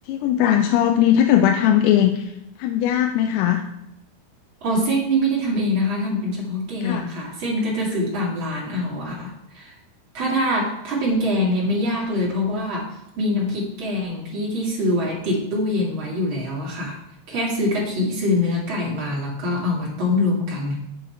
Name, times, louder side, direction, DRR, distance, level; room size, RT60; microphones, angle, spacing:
voice 1, 0.1-2.3 2.6-3.6 6.8-7.1, left 10 dB, 90° left, 4 dB, 3.3 m, -19 dB
voice 2, 4.6-9.7 10.1-17.0 17.3-20.8, left 1 dB, 55° right, -5 dB, 1.4 m, -24 dB
7.9 x 7.9 x 4.4 m, 0.83 s
omnidirectional pair, 5.9 m